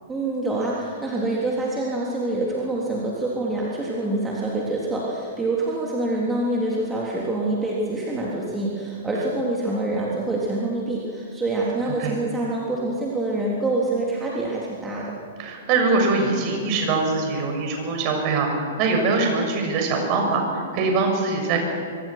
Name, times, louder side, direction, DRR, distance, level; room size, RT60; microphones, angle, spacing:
voice 1, 0.1-15.1, right 2 dB, 10° right, -4 dB, 3.5 m, -26 dB
voice 2, 11.9-12.2 15.4-21.6, right 3 dB, 40° right, 2 dB, 6.8 m, -23 dB
25.0 x 24.5 x 6.0 m, 2.4 s
figure-of-eight pair, 105°, 0 cm